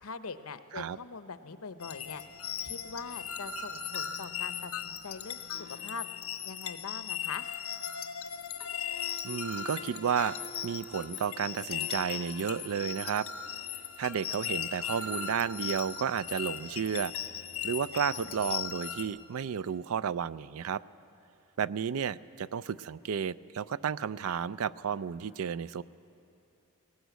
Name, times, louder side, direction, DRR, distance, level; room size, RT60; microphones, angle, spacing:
voice 1, 0.0-2.2 2.6-6.1 6.4-7.5, left 4 dB, 90° left, 11 dB, 0.8 m, -42 dB
sound 1, 1.8-19.1, left 8 dB, 70° left, 1.3 m, -38 dB
sound 2, 8.8-9.3 10.7-12.2 13.7-13.8 14.2-15.1, left 1 dB, 20° right, 5.8 m, -57 dB
voice 2, 9.2-10.3 10.6-13.3 14.0-17.1 17.6-20.8 21.6-25.8, right 7 dB, 80° right, 18 dB, 0.4 m, -32 dB
19.0 x 18.5 x 8.1 m, 2.8 s
head